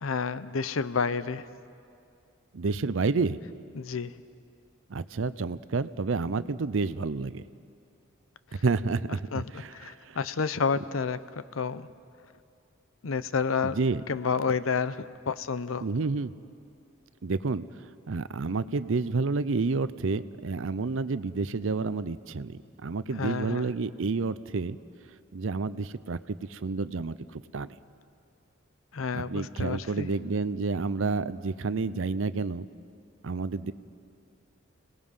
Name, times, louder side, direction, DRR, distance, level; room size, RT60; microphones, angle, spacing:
voice 1, 0.0-1.4 3.7-4.1 9.3-9.4 9.7-11.2 11.5-11.9 13.0-13.8 14.1-15.8 23.2-23.7 28.9-30.1, left 5 dB, 90° left, 15 dB, 0.7 m, -30 dB
voice 2, 2.5-3.4 4.9-7.4 8.6-10.2 13.6-14.0 15.8-16.3 17.2-17.6 18.1-24.8 25.3-27.7 29.1-32.7 33.2-33.7, right 4 dB, 70° right, 15 dB, 0.6 m, -30 dB
29.5 x 19.0 x 5.6 m, 2.4 s
head